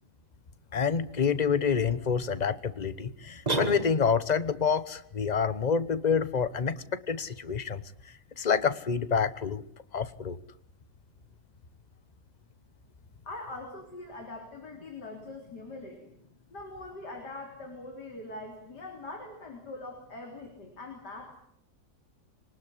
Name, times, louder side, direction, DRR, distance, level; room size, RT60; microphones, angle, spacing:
voice 1, 0.7-7.8 8.4-9.6 9.9-10.4, left 6 dB, 30° left, 14 dB, 1.0 m, -27 dB
sound 1, 3.5-4.4, right 3 dB, 25° right, 2.2 m, -31 dB
voice 2, 13.2-16.1 16.5-21.4, left 2 dB, 90° left, 2 dB, 4.3 m, -42 dB
24.5 x 19.5 x 9.9 m, 0.70 s
omnidirectional pair, 1.7 m